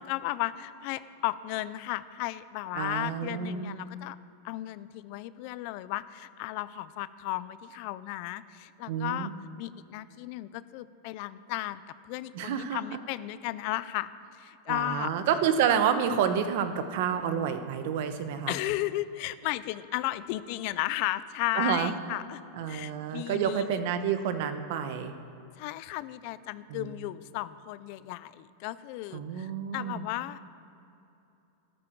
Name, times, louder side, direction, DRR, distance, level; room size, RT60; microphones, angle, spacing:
voice 1, 0.0-4.2 4.4-9.3 9.6-15.1 18.5-22.4 22.7-23.8 25.6-30.4, left 16 dB, 50° left, 16 dB, 0.4 m, -34 dB
voice 2, 2.7-3.8 8.9-9.3 12.3-12.8 14.7-18.6 21.5-21.9 22.6-25.1 26.7-26.9 29.1-30.1, right 8 dB, 55° right, 9 dB, 1.0 m, -29 dB
13.5 x 13.0 x 4.6 m, 2.9 s
supercardioid pair, 155°, 0 cm